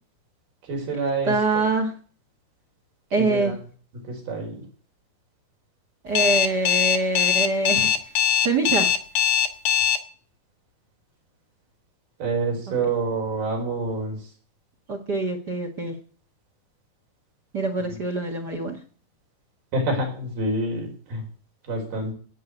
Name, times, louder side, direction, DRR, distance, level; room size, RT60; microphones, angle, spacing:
voice 1, 0.6-1.6 3.2-3.5 4.0-4.7 12.2-14.2 17.9-18.0 19.7-21.2 21.7-22.1, right 2 dB, 75° right, 1 dB, 6.6 m, -27 dB
voice 2, 1.3-1.9 3.1-3.5 6.0-7.9 8.4-8.9 14.9-15.9 17.5-18.8, right 3 dB, 45° right, 6 dB, 1.3 m, -24 dB
Alarm, 6.1-10.0, left 8 dB, 75° left, 3.1 m, -20 dB
17.0 x 5.8 x 8.6 m, 0.42 s
omnidirectional pair, 4.4 m